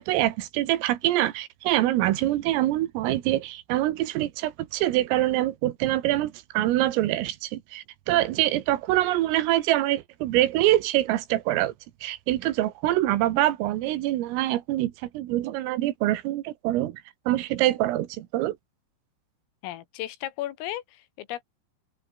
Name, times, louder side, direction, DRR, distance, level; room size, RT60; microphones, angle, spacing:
voice 1, 0.0-11.7 12.0-18.6, right 15 dB, 85° right, 4.0 m, -25 dB
voice 2, 19.6-21.4, left 14 dB, 80° left, 4.3 m, -35 dB
open air
omnidirectional pair, 5.9 m